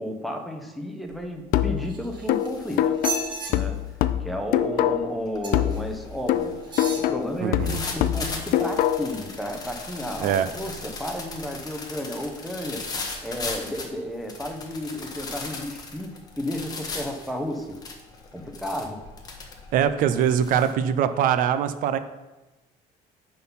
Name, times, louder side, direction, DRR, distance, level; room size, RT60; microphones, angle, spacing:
voice 1, 0.0-3.0 3.5-3.8 4.2-12.9 13.2-17.8 18.3-19.0, equal, ahead, 3 dB, 0.8 m, -33 dB
sound 1, 1.1-1.4 1.8-20.7, left 3 dB, 25° left, 1.0 m, -38 dB
sound 2, 1.5-5.2 5.5-9.2, left 11 dB, 65° left, 0.5 m, -25 dB
sound 3, 1.8-2.5 2.9-3.5 5.4-5.8 6.6-7.1 7.7-7.8, right 4 dB, 30° right, 1.2 m, -33 dB
voice 2, 7.4-7.8 10.2-10.5 19.7-22.0, right 9 dB, 60° right, 11 dB, 0.6 m, -22 dB
10.0 x 3.9 x 5.6 m, 1.1 s
cardioid pair, 160°, 16 cm